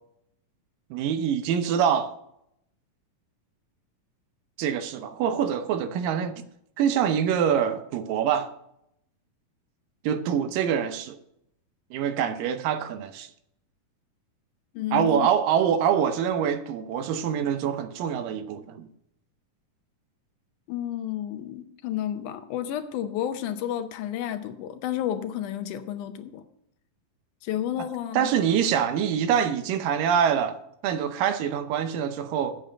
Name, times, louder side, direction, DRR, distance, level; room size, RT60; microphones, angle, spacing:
voice 1, 0.9-2.1 4.6-6.4 6.8-8.5 10.0-11.2 11.9-13.3 14.9-18.9 27.8-27.9 28.1-30.6 30.8-32.6, right 8 dB, 80° right, 2.4 m, -25 dB
voice 2, 14.7-15.3 20.7-26.4 27.4-28.4, left 11 dB, 75° left, 2.0 m, -31 dB
8.0 x 7.5 x 6.4 m
omnidirectional pair, 3.9 m